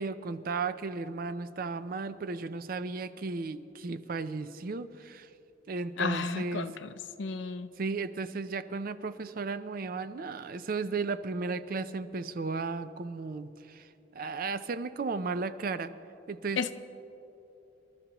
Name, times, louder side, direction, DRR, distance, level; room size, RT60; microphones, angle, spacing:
voice 1, 0.0-5.3 5.7-6.7 7.8-15.9 16.3-16.7, right 4 dB, 45° right, 13 dB, 0.4 m, -35 dB
voice 2, 6.0-6.9 7.2-7.7 16.6-16.7, left 4 dB, 65° left, 11 dB, 0.5 m, -32 dB
26.5 x 12.5 x 3.0 m, 2.9 s
head